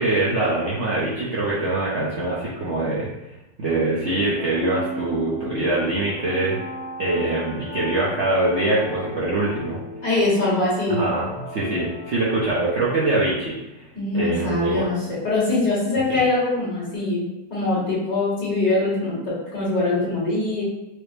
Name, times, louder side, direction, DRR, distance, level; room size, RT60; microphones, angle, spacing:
voice 1, 0.0-3.1 3.6-6.6 7.0-9.8 10.9-13.8 14.1-14.9 16.1-16.2, right 2 dB, 55° right, -8 dB, 0.8 m, -23 dB
sound 1, 4.1-12.7, left 2 dB, 75° left, 0.6 m, -36 dB
voice 2, 10.0-11.1 13.9-17.2 17.5-20.6, left 2 dB, 55° left, -8 dB, 2.0 m, -23 dB
4.7 x 2.0 x 3.2 m, 0.98 s
omnidirectional pair, 1.9 m